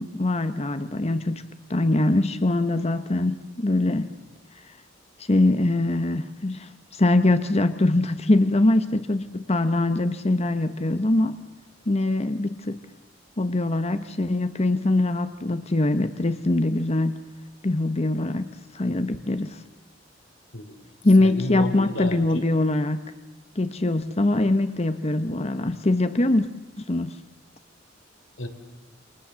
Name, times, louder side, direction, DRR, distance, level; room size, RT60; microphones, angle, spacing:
voice 1, 0.0-1.4 1.7-4.1 5.2-11.4 11.9-12.8 13.4-17.2 17.6-19.6 21.0-23.0 23.6-26.5 26.8-27.2, left 2 dB, 35° left, 10 dB, 1.0 m, -23 dB
voice 2, 20.5-20.9 21.2-22.4 28.4-28.5, left 1 dB, 90° left, 7 dB, 3.5 m, -32 dB
28.0 x 25.5 x 7.5 m, 1.1 s
head